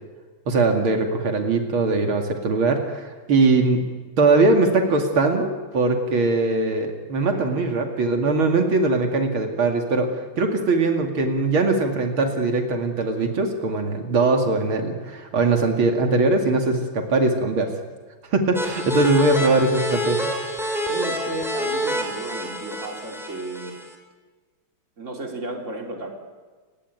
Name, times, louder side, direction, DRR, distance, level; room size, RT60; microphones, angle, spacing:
voice 1, 0.5-3.8 4.2-10.1 10.4-17.7 18.3-20.2, right 3 dB, 90° right, 4 dB, 3.2 m, -21 dB
sound 1, 18.5-23.9, equal, ahead, 4.1 m, -28 dB
voice 2, 20.9-23.7 25.0-26.1, right 2 dB, 35° right, 2 dB, 3.8 m, -33 dB
29.0 x 16.5 x 9.5 m, 1.4 s
omnidirectional pair, 2.2 m